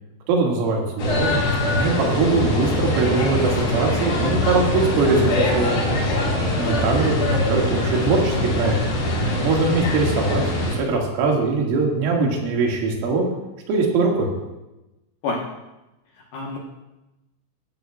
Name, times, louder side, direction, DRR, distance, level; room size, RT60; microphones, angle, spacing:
voice 1, 0.3-5.8 6.6-8.8 9.4-13.3 13.7-14.3, right 3 dB, 85° right, -1 dB, 4.5 m, -22 dB
sound 1, 1.0-10.8, left 1 dB, 50° left, 4.3 m, -23 dB
voice 2, 15.2-15.5 16.3-16.6, left 3 dB, 70° left, -2 dB, 2.4 m, -30 dB
16.5 x 13.0 x 2.3 m, 0.99 s
omnidirectional pair, 5.7 m